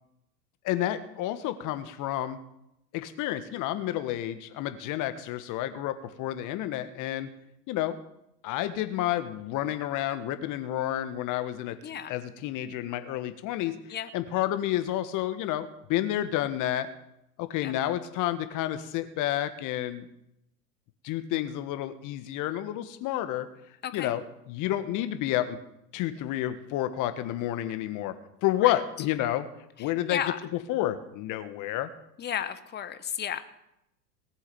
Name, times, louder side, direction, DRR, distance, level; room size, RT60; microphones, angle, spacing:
voice 1, 0.6-2.4 2.9-7.3 7.7-8.0 8.4-11.8 12.1-13.7 14.1-16.9 17.4-20.0 21.0-23.5 23.9-24.2 24.5-25.6 25.9-28.1 28.4-29.5 29.8-30.2 30.7-31.9, left 13 dB, 40° left, 10 dB, 1.6 m, -30 dB
voice 2, 11.8-12.1 13.9-14.1 17.6-17.7 23.8-24.2 28.5-28.8 29.8-30.4 32.2-33.4, left 9 dB, 20° left, 12 dB, 1.1 m, -34 dB
18.5 x 8.3 x 7.0 m, 0.82 s
hypercardioid pair, 95°, 48 cm